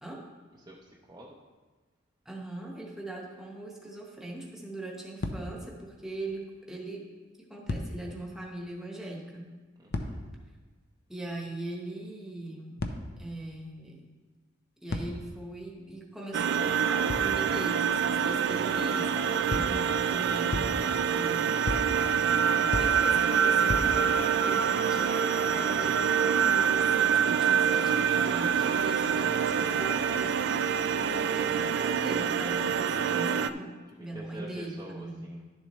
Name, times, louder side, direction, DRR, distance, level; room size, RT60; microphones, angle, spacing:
voice 1, 0.6-1.4 9.8-10.2 34.0-35.4, right 1 dB, 20° right, -3 dB, 0.6 m, -46 dB
voice 2, 2.2-7.1 7.4-9.6 11.1-12.8 13.2-14.1 14.8-21.6 22.6-30.7 31.0-35.4, right 2 dB, ahead, -1 dB, 1.2 m, -40 dB
sound 1, 5.2-5.8 6.3-6.4 7.6-8.3 9.9-10.5 12.8-13.4 14.9-15.5 17.1-17.6 19.5-20.0 20.5-21.1 21.7-22.3 22.7-23.3 23.7-24.3, left 2 dB, 55° left, 0.7 m, -35 dB
sound 2, 16.3-33.5, right 7 dB, 60° right, 0.3 m, -26 dB
11.0 x 7.1 x 3.1 m, 1.3 s
head